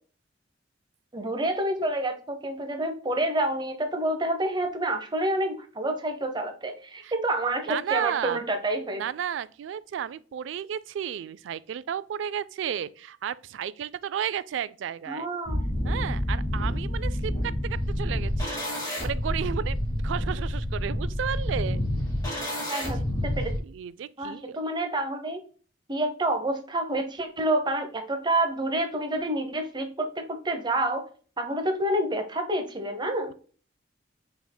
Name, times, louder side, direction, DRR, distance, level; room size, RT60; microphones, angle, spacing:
voice 1, 1.1-9.0 15.1-15.6 22.7-23.5 24.2-25.4 25.9-31.0 31.4-33.3, right 1 dB, 25° right, 0.8 m, -28 dB
voice 2, 7.7-8.4 9.0-15.3 15.8-21.8 23.6-24.6, right 8 dB, 75° right, 0.3 m, -33 dB
sound 1, 15.5-23.6, left 1 dB, 20° left, 2.0 m, -28 dB
5.7 x 4.2 x 2.2 m
head